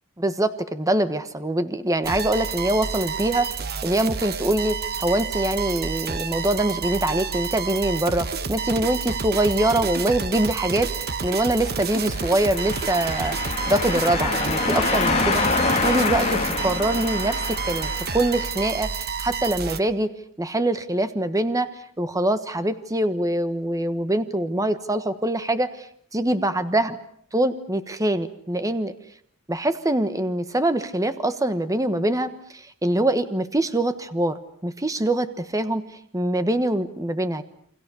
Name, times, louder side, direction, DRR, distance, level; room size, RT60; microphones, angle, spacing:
voice 1, 0.2-13.4 13.7-15.4 15.8-20.1 20.4-21.7 22.0-25.9 26.1-27.0 27.3-28.9 29.5-35.8 36.1-37.4, right 1 dB, 15° right, 11 dB, 1.3 m, -24 dB
sound 1, 2.0-19.8, right 5 dB, 45° right, 1.2 m, -29 dB
sound 2, 11.8-18.6, left 4 dB, 30° left, 3.1 m, -26 dB
29.0 x 24.5 x 7.0 m, 0.65 s
head